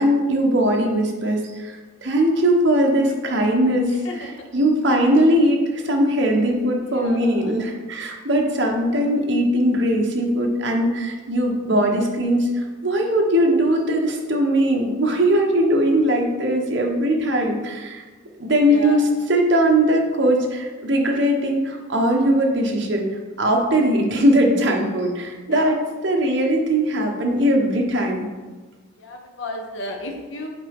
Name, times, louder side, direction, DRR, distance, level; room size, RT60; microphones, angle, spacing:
voice 1, 0.0-1.8 2.0-18.0 18.4-23.1 23.4-25.8 26.0-28.3, equal, 65° right, 1 dB, 1.1 m, -20 dB
voice 2, 4.0-4.4 6.9-7.5 18.7-19.0 25.5-25.8 29.0-30.5, left 2 dB, 75° left, 2 dB, 1.1 m, -33 dB
7.1 x 4.8 x 3.5 m, 1.3 s
head